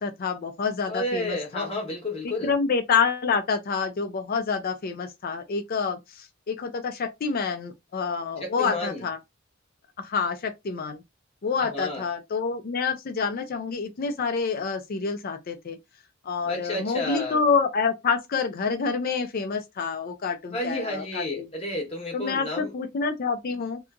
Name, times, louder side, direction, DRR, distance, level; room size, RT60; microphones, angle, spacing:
voice 1, 0.0-1.7 2.2-9.2 10.0-11.0 11.4-15.8 16.2-21.5 22.1-23.8, left 5 dB, 45° left, 0.4 m, -27 dB
voice 2, 0.9-2.5 8.4-9.0 11.7-12.0 16.4-17.4 20.5-22.7, left 1 dB, 30° left, 0.9 m, -31 dB
2.7 x 2.5 x 2.3 m
head